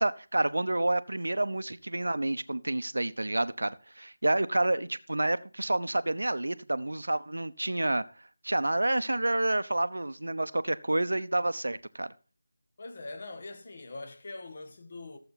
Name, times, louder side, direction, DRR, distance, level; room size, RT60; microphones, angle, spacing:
voice 1, 0.0-8.0 8.4-12.1, right 2 dB, 75° right, 0.8 m, -29 dB
voice 2, 12.8-15.2, left 2 dB, 40° left, 1.9 m, -42 dB
15.0 x 7.7 x 4.1 m
figure-of-eight pair, 165°, 0 cm